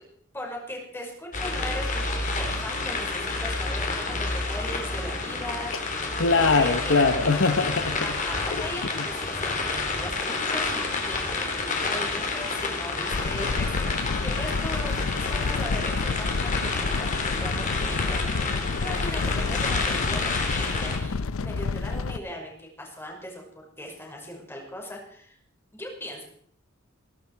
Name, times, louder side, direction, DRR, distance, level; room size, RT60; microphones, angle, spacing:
voice 1, 0.3-6.0 6.5-7.0 8.0-13.7 14.0-23.4 23.8-25.4 25.7-26.2, left 1 dB, 10° left, -1 dB, 5.2 m, -39 dB
sound 1, 1.3-21.0, left 3 dB, 40° left, 3.2 m, -29 dB
voice 2, 6.2-8.1 8.5-8.6 8.9-9.0, left 4 dB, 65° left, 9 dB, 1.0 m, -22 dB
sound 2, 13.1-22.2, left 4 dB, 85° left, 0.6 m, -29 dB
21.5 x 12.0 x 4.7 m, 0.62 s
head